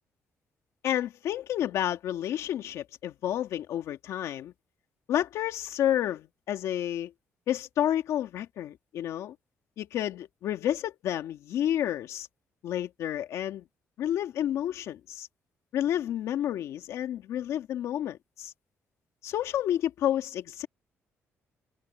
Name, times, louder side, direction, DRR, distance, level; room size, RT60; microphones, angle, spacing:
voice 1, 0.8-4.5 5.1-7.1 7.5-9.3 9.8-12.3 12.6-13.6 14.0-15.3 15.7-18.5 19.2-20.7, left 11 dB, 80° left, 2.1 m, -30 dB
cardioid pair, 85°, 5 cm